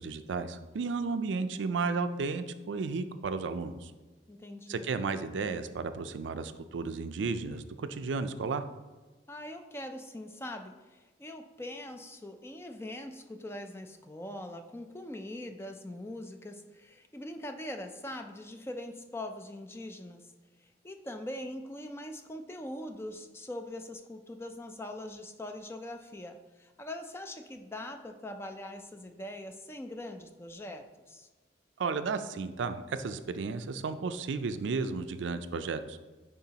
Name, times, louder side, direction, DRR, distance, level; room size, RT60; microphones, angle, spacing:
voice 1, 0.0-3.9 4.7-8.6 31.8-36.0, right 4 dB, 85° right, 10 dB, 0.4 m, -33 dB
voice 2, 4.3-4.8 9.3-20.3 20.6-31.3, left 1 dB, 15° left, 6 dB, 0.4 m, -42 dB
9.8 x 3.7 x 2.8 m, 1.2 s
head